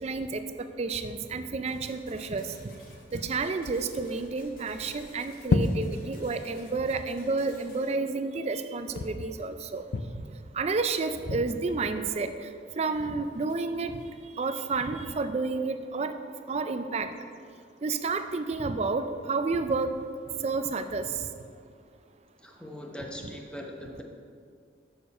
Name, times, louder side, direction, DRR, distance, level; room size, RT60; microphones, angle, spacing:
voice 1, 0.0-2.5 3.1-9.8 10.5-12.3 12.8-13.9 14.4-16.1 16.5-17.1 17.8-19.9 20.4-21.3, right 4 dB, 35° right, 9 dB, 0.4 m, -30 dB
sound 1, 1.7-7.9, left 2 dB, 55° left, 1.3 m, -54 dB
sound 2, 3.2-12.5 13.0-13.7 14.0-14.1 17.0-17.8 20.3-20.6 21.9-22.0, left 3 dB, 75° left, 0.4 m, -35 dB
voice 2, 22.4-24.0, equal, 5° left, 1 dB, 0.8 m, -41 dB
7.0 x 6.6 x 5.4 m, 2.2 s
head